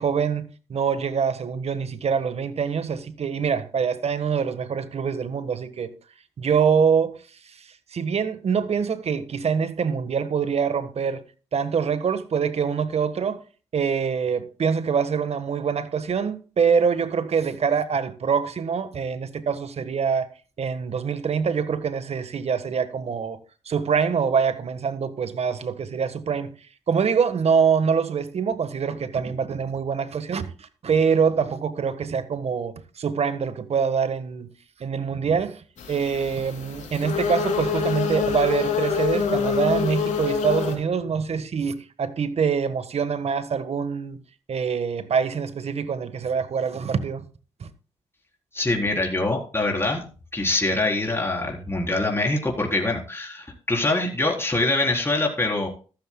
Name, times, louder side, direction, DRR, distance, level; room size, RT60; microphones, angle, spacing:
voice 1, 0.0-5.9 6.4-7.2 7.4-11.2 11.5-13.4 13.7-20.3 20.6-23.4 23.6-26.5 26.9-34.5 34.8-44.2 44.5-47.2 47.6-47.7, right 6 dB, 60° right, 1.4 m, -25 dB
sound 1, 35.8-40.7, left 6 dB, 80° left, 3.1 m, -26 dB
voice 2, 48.5-50.0 50.3-55.7, left 2 dB, 20° left, 4.2 m, -24 dB
13.5 x 13.0 x 2.3 m
supercardioid pair, 50°, 12 cm